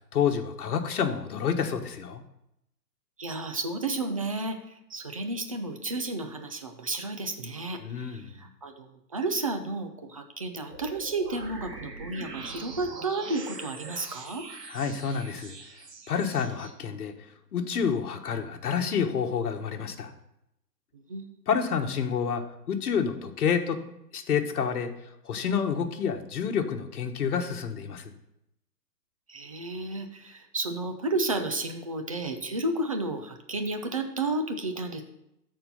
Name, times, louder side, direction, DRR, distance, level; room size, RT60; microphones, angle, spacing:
voice 1, 0.1-2.2 7.8-8.5 14.7-15.5 16.1-17.1 17.5-20.1 21.5-23.8 24.1-24.9 25.2-28.0, left 7 dB, 60° left, 4 dB, 1.5 m, -28 dB
voice 2, 3.2-14.4 20.9-21.4 29.3-35.0, right 2 dB, 25° right, 5 dB, 0.4 m, -32 dB
sound 1, 10.7-16.7, right 4 dB, 70° right, 2.3 m, -43 dB
13.0 x 4.5 x 5.5 m, 0.82 s
hypercardioid pair, 140°, 50 cm